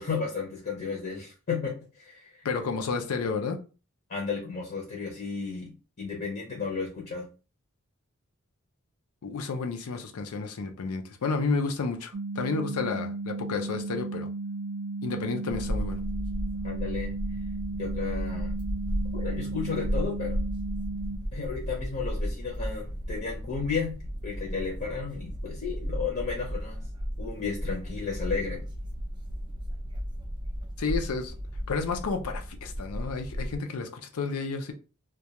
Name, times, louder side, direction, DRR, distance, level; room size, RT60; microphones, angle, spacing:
voice 1, 0.0-2.5 4.1-7.3 16.6-17.1 17.7-18.6 19.1-20.4 21.3-24.0 24.2-26.8 27.2-28.7, left 5 dB, 45° left, 0.6 m, -33 dB
voice 2, 2.4-3.6 9.2-14.3 15.0-16.0 30.8-31.3 31.7-34.7, left 4 dB, 90° left, 0.5 m, -31 dB
sound 1, 12.1-21.2, right 3 dB, 75° right, 0.5 m, -35 dB
sound 2, 15.5-33.6, equal, 20° right, 0.3 m, -34 dB
2.3 x 2.2 x 2.8 m
head